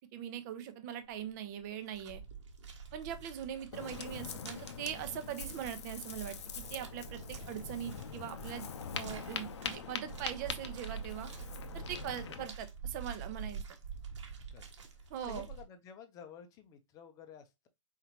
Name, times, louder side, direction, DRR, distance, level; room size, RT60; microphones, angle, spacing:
voice 1, 0.1-2.2 2.9-8.7 8.9-11.3 11.7-13.6 15.1-15.5, right 10 dB, 35° right, 0.9 m, -41 dB
sound 1, 1.1-1.3 1.6-15.6, right 5 dB, 65° right, 1.4 m, -47 dB
Ocean, 3.7-12.5, left 7 dB, 60° left, 0.8 m, -44 dB
voice 2, 14.5-14.9 15.3-17.7, left 8 dB, 20° left, 0.8 m, -52 dB
4.6 x 3.9 x 2.9 m
hypercardioid pair, 130°, 17 cm